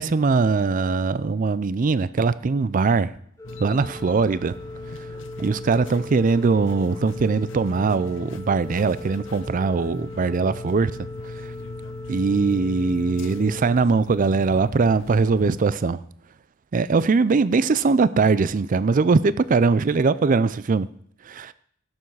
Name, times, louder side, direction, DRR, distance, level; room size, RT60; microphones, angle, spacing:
voice 1, 0.0-3.1 3.6-4.6 5.4-11.0 12.1-16.0 16.7-20.9 21.3-21.5, right 4 dB, 40° right, 0.4 m, -21 dB
sound 1, 3.4-15.6, left 3 dB, 70° left, 0.7 m, -40 dB
Organ, 3.4-14.5, left 1 dB, 15° left, 0.8 m, -40 dB
16.5 x 7.0 x 4.7 m
head